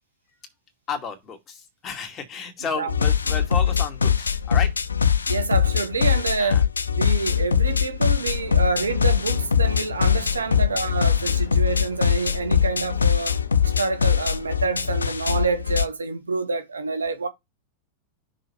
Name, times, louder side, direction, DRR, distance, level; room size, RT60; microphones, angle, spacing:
voice 1, 0.9-4.7 6.4-6.6, left 6 dB, 25° left, 2.5 m, -32 dB
sound 1, 2.9-15.9, left 7 dB, 75° left, 0.6 m, -22 dB
voice 2, 5.3-6.6 7.0-17.3, right 4 dB, 75° right, 1.2 m, -27 dB
Fixed-wing aircraft airplane, 8.0-15.1, left 9 dB, 50° left, 1.4 m, -46 dB
6.4 x 4.5 x 4.5 m
figure-of-eight pair, 90°, 0 cm